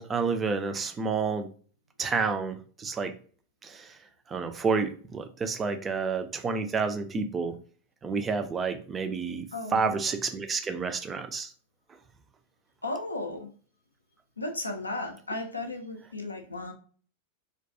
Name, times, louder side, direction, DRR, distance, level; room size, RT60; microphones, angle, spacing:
voice 1, 0.0-1.5 2.0-3.1 3.6-3.9 4.3-7.5 8.0-11.5, right 5 dB, 20° right, 7 dB, 0.3 m, -29 dB
voice 2, 9.5-9.9 12.8-13.5 14.4-16.7, left 2 dB, 80° left, 4 dB, 0.4 m, -35 dB
2.3 x 2.2 x 2.6 m, 0.42 s
figure-of-eight pair, 90°, 0 cm